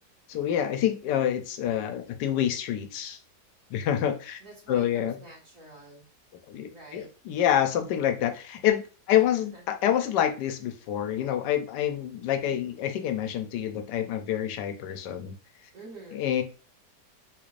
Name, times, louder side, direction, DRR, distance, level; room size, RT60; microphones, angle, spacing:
voice 1, 0.3-3.2 3.7-4.4 4.7-5.2 6.5-15.3 16.1-16.4, left 10 dB, 85° left, 6 dB, 1.2 m, -27 dB
voice 2, 4.4-6.0 6.7-7.1 9.1-9.6 15.7-16.2, right 2 dB, 55° right, -4 dB, 1.7 m, -47 dB
3.7 x 2.5 x 3.1 m, 0.35 s
omnidirectional pair, 1.8 m